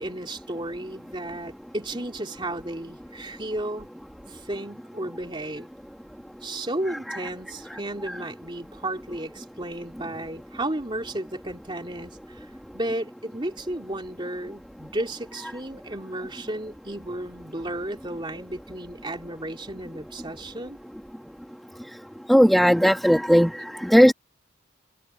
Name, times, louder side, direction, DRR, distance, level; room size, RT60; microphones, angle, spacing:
voice 1, 0.0-3.9 4.3-5.7 6.4-12.5 12.7-20.8, right 1 dB, 25° right, 2.8 m, -33 dB
voice 2, 6.9-7.2 7.7-7.8 8.1-8.2 22.3-24.1, equal, ahead, 1.1 m, -18 dB
head